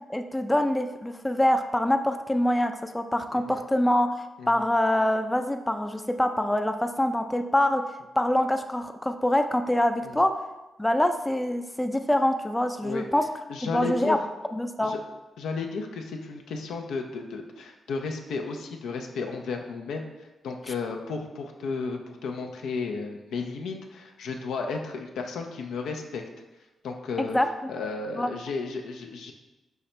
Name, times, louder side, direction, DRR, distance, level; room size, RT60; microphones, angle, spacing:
voice 1, 0.1-4.1 4.5-7.8 8.2-10.3 10.8-13.2 13.6-14.2 14.5-14.9 27.2-27.5 28.2-28.3, left 1 dB, 15° left, 7 dB, 0.4 m, -25 dB
voice 2, 13.5-14.2 14.8-15.0 15.4-20.0 20.4-26.2 26.8-27.4 27.7-29.3, left 4 dB, 85° left, 3 dB, 0.5 m, -33 dB
5.6 x 2.8 x 3.2 m, 1.0 s
supercardioid pair, 55°, 0 cm